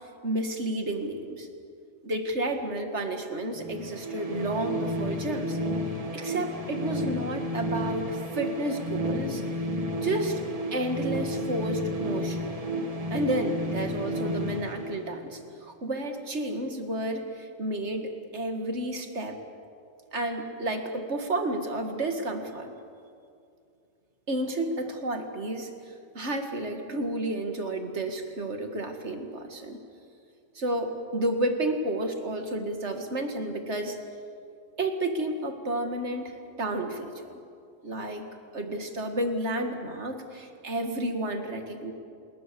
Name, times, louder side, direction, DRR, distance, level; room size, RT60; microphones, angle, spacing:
voice 1, 0.2-1.5 2.0-5.6 6.1-9.4 10.0-10.4 10.7-12.5 13.1-19.4 20.1-22.7 24.3-29.8 30.5-34.0 34.8-36.3 36.6-37.1 37.8-38.3 38.5-41.9, right 1 dB, 60° right, 5 dB, 2.3 m, -31 dB
sound 1, 3.5-15.5, equal, 25° right, 1.8 m, -32 dB
27.0 x 21.5 x 7.0 m, 2.5 s
omnidirectional pair, 1.4 m